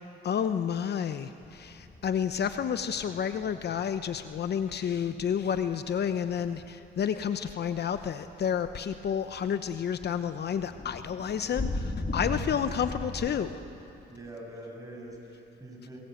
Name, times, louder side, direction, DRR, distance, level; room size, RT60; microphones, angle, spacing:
voice 1, 0.2-13.6, left 8 dB, 55° left, 10 dB, 0.9 m, -30 dB
sound 1, 1.4-6.8 7.3-13.3, left 2 dB, 30° left, 3.7 m, -38 dB
voice 2, 12.2-12.5 14.1-16.0, right 1 dB, 15° right, 0 dB, 7.0 m, -44 dB
28.0 x 21.0 x 8.0 m, 2.8 s
cardioid pair, 90°, 20 cm